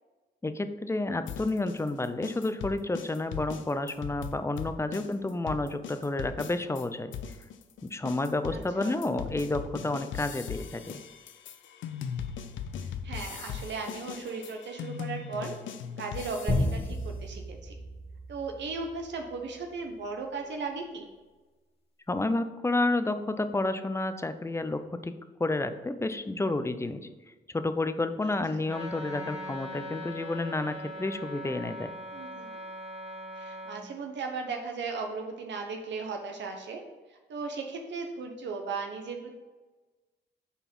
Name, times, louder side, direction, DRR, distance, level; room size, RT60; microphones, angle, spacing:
voice 1, 0.4-7.1 7.8-11.0 22.1-25.1 25.4-27.1 27.5-31.9, left 2 dB, 15° left, 10 dB, 0.5 m, -30 dB
sound 1, 1.3-6.8 7.1-16.9, left 7 dB, 80° left, 0.6 m, -39 dB
voice 2, 5.0-5.4 8.5-9.0 12.8-15.6 16.0-17.7 18.3-21.1 28.2-28.6 32.1-32.6 33.4-36.8 37.1-39.3, right 4 dB, 70° right, 3 dB, 0.9 m, -37 dB
sound 2, 16.5-19.3, left 1 dB, 30° left, 1.9 m, -32 dB
Wind instrument woodwind instrument, 28.6-33.9, equal, 35° right, 1.5 m, -41 dB
5.8 x 4.2 x 5.4 m, 1.2 s
cardioid pair, 80°, 19 cm